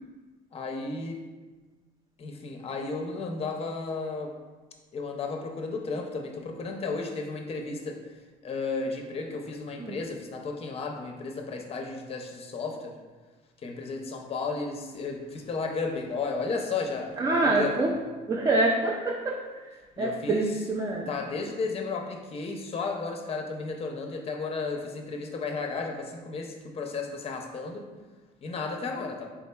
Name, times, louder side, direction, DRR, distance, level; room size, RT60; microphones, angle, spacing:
voice 1, 0.5-1.2 2.2-4.3 4.9-8.0 8.4-13.0 13.6-17.9 20.0-20.5 21.1-27.9 28.4-29.3, left 4 dB, 35° left, 2 dB, 0.5 m, -33 dB
voice 2, 17.2-17.9 18.3-19.4 20.0-21.1, right 2 dB, 25° right, -1 dB, 0.3 m, -25 dB
4.2 x 3.5 x 2.2 m, 1.3 s
cardioid pair, 110°, 17 cm